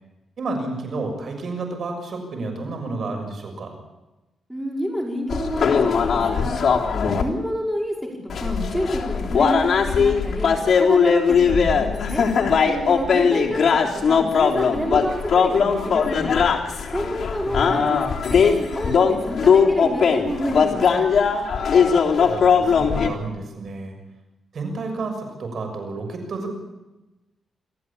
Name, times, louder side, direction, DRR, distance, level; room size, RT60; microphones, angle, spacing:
voice 1, 0.4-3.7 17.5-18.0 22.2-24.0 24.5-26.5, right 3 dB, 55° right, 3 dB, 6.6 m, -31 dB
voice 2, 4.5-6.6 6.9-7.9 8.4-10.5 10.8-12.2 12.6-13.7 14.1-16.3 16.9-18.0 18.3-21.0, equal, 5° right, -1 dB, 5.2 m, -28 dB
sound 1, 5.3-7.2 8.3-23.1, left 6 dB, 55° left, 3.6 m, -19 dB
27.0 x 14.5 x 8.6 m, 1.1 s
cardioid pair, 110°, 0 cm